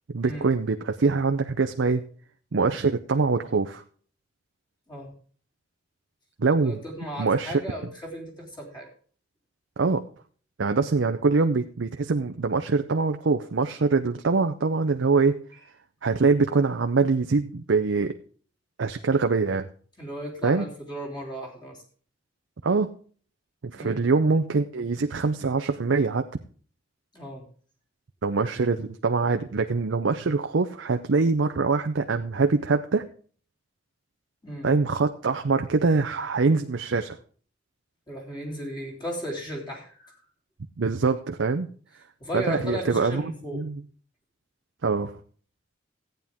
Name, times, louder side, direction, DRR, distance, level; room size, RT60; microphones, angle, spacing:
voice 1, 0.1-2.0 2.5-3.8 6.4-6.8 7.2-7.6 9.8-10.0 10.6-15.4 16.0-18.1 18.8-19.7 20.4-20.7 22.6-22.9 23.6-26.3 28.2-33.0 34.6-37.2 40.8-41.7 42.3-43.8 44.8-45.1, right 4 dB, 85° right, 7 dB, 0.6 m, -24 dB
voice 2, 6.6-8.9 20.0-21.8 23.7-24.0 27.1-27.4 34.4-34.7 38.1-40.2 42.2-43.6, equal, 25° left, -3 dB, 3.2 m, -35 dB
15.0 x 9.1 x 3.5 m, 0.43 s
head